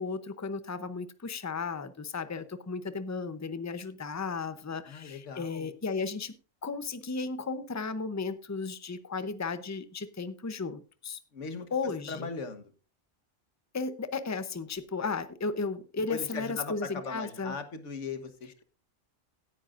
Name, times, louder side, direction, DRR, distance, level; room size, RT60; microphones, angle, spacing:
voice 1, 0.0-6.3 6.6-11.2 11.7-12.3 13.7-17.6, left 4 dB, 20° left, 12 dB, 0.6 m, -34 dB
voice 2, 4.9-5.7 11.3-12.7 16.1-18.6, left 4 dB, 80° left, 8 dB, 1.6 m, -39 dB
16.5 x 10.0 x 2.5 m, 0.35 s
omnidirectional pair, 1.2 m